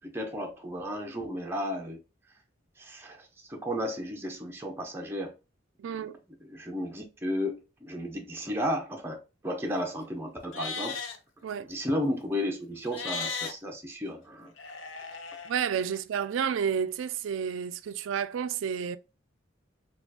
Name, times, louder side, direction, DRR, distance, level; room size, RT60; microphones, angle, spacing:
voice 1, 0.0-2.0 2.8-3.2 3.5-5.3 6.4-11.0 11.6-14.5, equal, 10° right, 0.6 m, -33 dB
voice 2, 5.8-6.2 11.4-11.7 15.4-19.0, right 7 dB, 80° right, 0.3 m, -30 dB
Livestock farm animals working animals, 10.4-11.2 12.8-13.5 14.6-15.5, left 5 dB, 70° left, 0.6 m, -36 dB
4.2 x 2.3 x 2.7 m
head